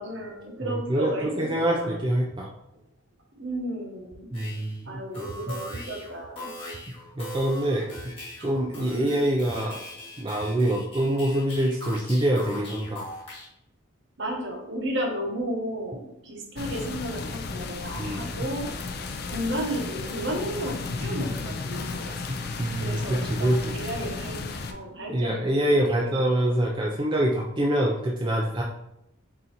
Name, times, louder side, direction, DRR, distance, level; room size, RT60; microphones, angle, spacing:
voice 1, 0.0-2.0 3.4-4.3 4.9-6.5 8.8-9.2 14.2-18.7 19.3-22.2 22.8-24.4 24.7-26.2, right 1 dB, 55° right, 0 dB, 1.0 m, -33 dB
voice 2, 0.6-2.5 4.3-5.3 7.2-7.9 8.4-9.8 10.2-13.0 18.0-18.2 22.3-23.7 25.1-28.6, right 1 dB, 20° right, -1 dB, 0.4 m, -25 dB
sound 1, 4.3-4.8 5.1-13.5, left 1 dB, 25° left, 1.3 m, -41 dB
sound 2, 16.6-24.7, left 4 dB, 45° left, 0.4 m, -34 dB
3.8 x 3.8 x 2.9 m, 0.81 s
head